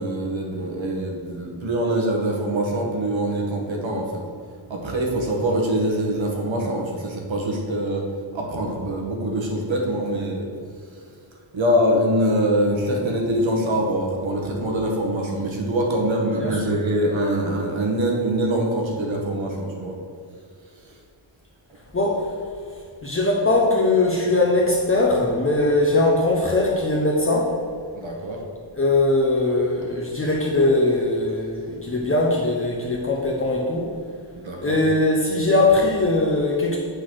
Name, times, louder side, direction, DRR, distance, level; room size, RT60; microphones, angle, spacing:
voice 1, 0.0-4.2 4.7-10.5 10.9-11.0 11.5-20.0 20.8-21.0 27.9-28.5 34.3-34.8, right 1 dB, 70° right, 0 dB, 1.6 m, -24 dB
voice 2, 23.0-27.5 28.8-33.9 34.6-36.8, left 2 dB, 25° left, -3 dB, 0.9 m, -20 dB
8.1 x 4.1 x 6.3 m, 2.2 s
wide cardioid pair, 160°, 47 cm